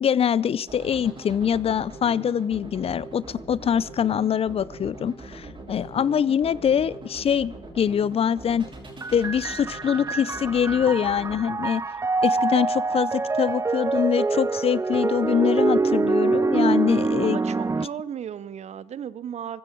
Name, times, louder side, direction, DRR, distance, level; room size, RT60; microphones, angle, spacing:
voice 1, 0.0-8.7 9.1-11.8 12.2-17.4, left 8 dB, 45° left, 22 dB, 0.5 m, -24 dB
sound 1, 0.6-11.4, right 2 dB, 35° right, 5.5 m, -42 dB
sound 2, 9.0-17.9, right 3 dB, 20° right, 0.6 m, -25 dB
voice 2, 17.2-19.6, right 9 dB, 55° right, 19 dB, 0.8 m, -35 dB
19.5 x 15.0 x 4.6 m, 0.89 s
hypercardioid pair, 55°, 14 cm